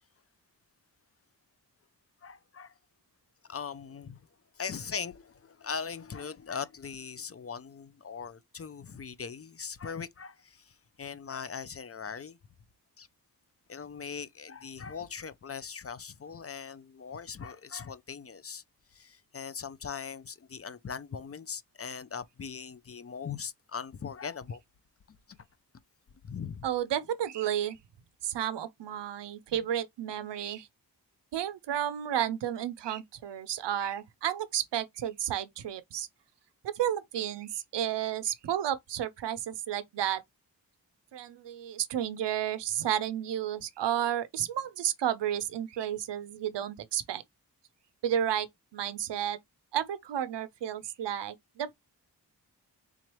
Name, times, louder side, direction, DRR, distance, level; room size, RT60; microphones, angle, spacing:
voice 1, 2.2-2.7 3.5-4.2 4.6-10.6 11.0-12.4 13.0-13.1 13.7-18.6 18.9-24.6 26.2-26.7, left 6 dB, 35° left, 0.5 m, -40 dB
voice 2, 26.6-27.8 28.2-30.7 31.3-36.1 36.7-40.2 41.1-47.2 48.0-48.5 48.7-49.4 49.7-51.7, right 10 dB, 80° right, 0.5 m, -32 dB
3.7 x 3.0 x 3.0 m
cardioid pair, 45°, 42 cm